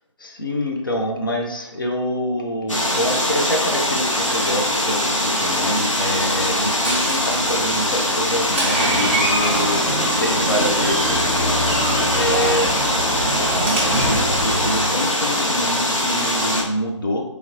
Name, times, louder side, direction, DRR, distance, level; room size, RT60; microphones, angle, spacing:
voice 1, 0.2-9.9 10.2-11.6 12.1-12.8 13.6-17.2, equal, 45° left, 2 dB, 0.4 m, -26 dB
sound 1, 2.7-16.6, left 1 dB, 85° left, 0.7 m, -22 dB
Door, 6.1-14.8, right 1 dB, 20° right, 0.5 m, -25 dB
3.1 x 2.7 x 2.4 m, 0.88 s
figure-of-eight pair, 150°, 16 cm